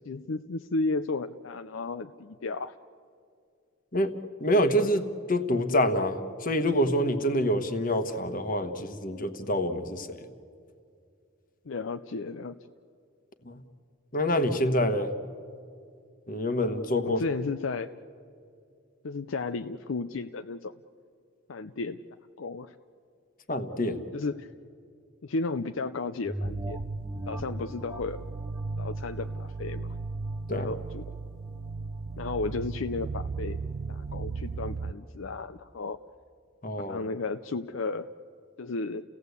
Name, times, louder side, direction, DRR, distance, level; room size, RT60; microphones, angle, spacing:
voice 1, 0.1-2.7 11.7-12.5 17.0-17.9 19.0-20.7 21.5-22.0 22.4-22.7 24.1-24.5 25.2-26.8 27.3-28.2 28.8-29.9 30.6-31.0 32.2-33.6 33.9-36.0 36.9-38.1 38.6-39.0, left 3 dB, 65° left, 9 dB, 0.5 m, -33 dB
voice 2, 4.4-10.2 13.4-13.6 14.1-15.1 16.3-17.2 23.5-24.0 30.5-30.7 36.6-37.0, equal, 40° left, 9 dB, 1.3 m, -26 dB
sound 1, 26.2-31.2 31.7-31.8, right 1 dB, 15° right, 0.7 m, -40 dB
sound 2, 26.4-34.9, right 4 dB, 85° right, 0.5 m, -36 dB
30.0 x 17.0 x 8.2 m, 2.4 s
head